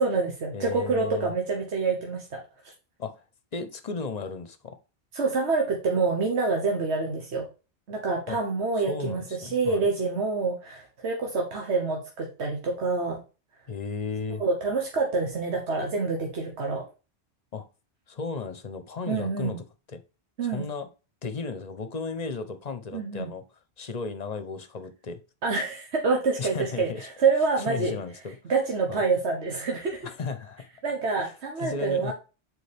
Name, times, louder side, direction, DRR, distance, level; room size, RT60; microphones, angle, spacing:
voice 1, 0.0-2.7 5.1-7.4 7.9-13.2 14.4-16.8 19.1-19.6 20.4-20.6 22.9-23.3 25.4-28.0 28.5-30.1 30.8-32.1, right 4 dB, 85° right, 1 dB, 1.4 m, -27 dB
voice 2, 0.5-1.3 3.0-3.1 3.5-4.8 8.3-8.4 8.9-9.8 13.7-14.4 17.5-17.7 18.1-19.6 19.9-20.0 20.4-20.9 21.2-23.4 23.8-25.2 26.4-27.1 27.7-28.3 28.9-29.0 30.0-30.6 31.6-32.1, left 4 dB, 40° left, 10 dB, 0.8 m, -34 dB
6.8 x 4.5 x 3.4 m, 0.32 s
omnidirectional pair, 1.1 m